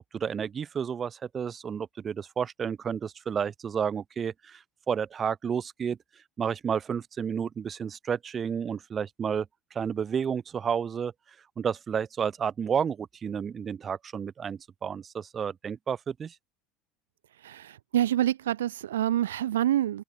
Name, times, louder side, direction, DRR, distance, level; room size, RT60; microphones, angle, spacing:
voice 1, 0.1-6.0 6.4-11.1 11.6-16.4, right 7 dB, 35° right, 0.9 m, -31 dB
voice 2, 17.4-20.0, right 12 dB, 80° right, 0.3 m, -27 dB
open air
hypercardioid pair, 75°, 0 cm